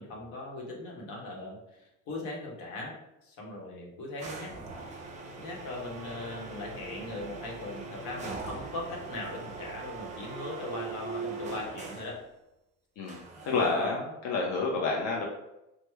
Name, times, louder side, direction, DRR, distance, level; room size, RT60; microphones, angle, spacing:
voice 1, 0.0-3.0 3.2-4.5 5.4-12.2 13.6-14.1, left 2 dB, 75° left, -1 dB, 1.0 m, -39 dB
sound 1, 4.2-12.2 13.1-14.0, right 3 dB, 20° right, 0.5 m, -41 dB
voice 2, 13.4-15.2, left 3 dB, 55° left, -2 dB, 0.6 m, -29 dB
3.1 x 2.1 x 3.3 m, 0.90 s
cardioid pair, 145°, 33 cm